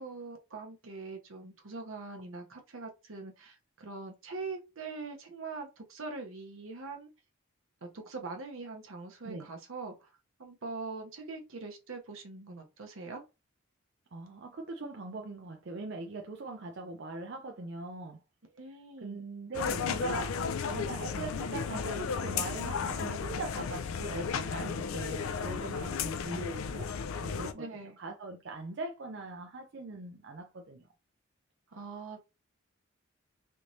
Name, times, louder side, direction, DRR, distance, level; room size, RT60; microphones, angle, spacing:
voice 1, 0.0-7.1 7.8-10.1 10.4-13.2 18.5-19.2 27.5-28.0 31.7-32.2, right 3 dB, 75° right, 0.9 m, -42 dB
voice 2, 14.1-18.2 19.0-26.9 27.2-27.7 28.0-30.9, right 3 dB, 55° right, 0.5 m, -41 dB
sound 1, 19.5-27.5, left 6 dB, 80° left, 0.4 m, -34 dB
3.3 x 3.1 x 2.7 m
head